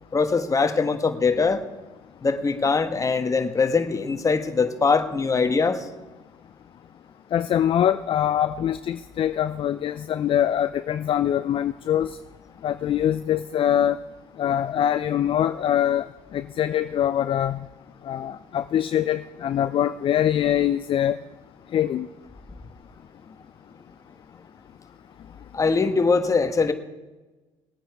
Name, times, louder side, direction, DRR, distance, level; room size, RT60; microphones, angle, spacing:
voice 1, 0.1-1.6 2.2-5.9 25.5-26.7, left 4 dB, 25° left, 8 dB, 1.4 m, -22 dB
voice 2, 7.3-12.2 12.6-14.0 14.4-16.1 16.3-17.7 18.0-21.2 21.7-22.1, left 10 dB, 45° left, 11 dB, 0.5 m, -23 dB
19.5 x 9.1 x 4.7 m, 1.2 s
supercardioid pair, 85°, 12 cm